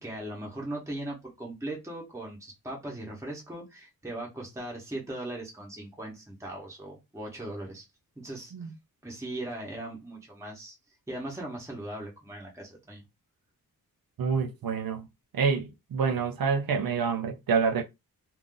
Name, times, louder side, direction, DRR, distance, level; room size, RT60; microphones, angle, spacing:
voice 1, 0.0-7.8 8.2-8.5 9.0-10.8 11.1-13.0, right 1 dB, 10° right, 0.9 m, -39 dB
voice 2, 14.2-15.0 15.3-17.8, right 5 dB, 65° right, 0.5 m, -27 dB
2.5 x 2.4 x 3.6 m
wide cardioid pair, 175°, 38 cm